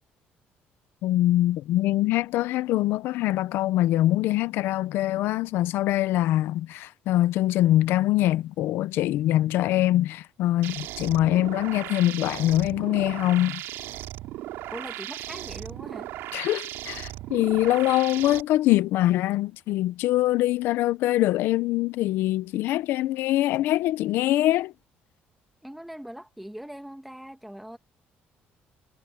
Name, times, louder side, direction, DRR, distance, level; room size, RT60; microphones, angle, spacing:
voice 1, 1.0-13.6 16.3-24.7, left 15 dB, 75° left, 0.7 m, -23 dB
sound 1, 10.6-18.4, right 15 dB, 90° right, 3.7 m, -37 dB
voice 2, 14.7-16.1 25.6-27.8, equal, ahead, 1.8 m, -41 dB
cardioid pair, 165°, 4 cm